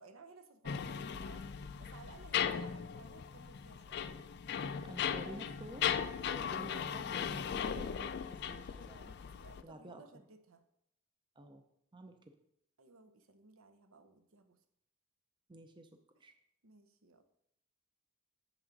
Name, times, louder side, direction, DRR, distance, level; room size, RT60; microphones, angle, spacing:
voice 1, 0.0-1.5 1.8-4.0 9.1-10.6 12.8-14.6 16.1-16.3 16.6-17.2, right 3 dB, 70° right, 8 dB, 0.8 m, -58 dB
sound 1, 0.7-9.6, left 8 dB, 50° left, 0.4 m, -38 dB
voice 2, 4.8-5.9 6.2-9.1 9.6-10.0 11.4-11.6 11.9-12.2 15.5-15.9 16.2-16.3, right 1 dB, 20° right, 6 dB, 0.5 m, -51 dB
7.0 x 6.1 x 5.2 m, 0.77 s
head